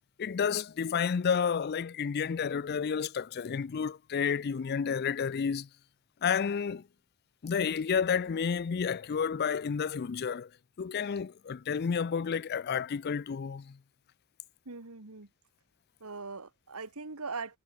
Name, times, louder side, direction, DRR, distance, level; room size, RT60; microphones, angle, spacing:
voice 1, 0.2-5.7 6.2-6.8 7.4-10.5 10.8-13.7, left 6 dB, 45° left, 0.4 m, -30 dB
voice 2, 14.7-15.3 16.0-17.6, right 4 dB, 85° right, 2.0 m, -40 dB
head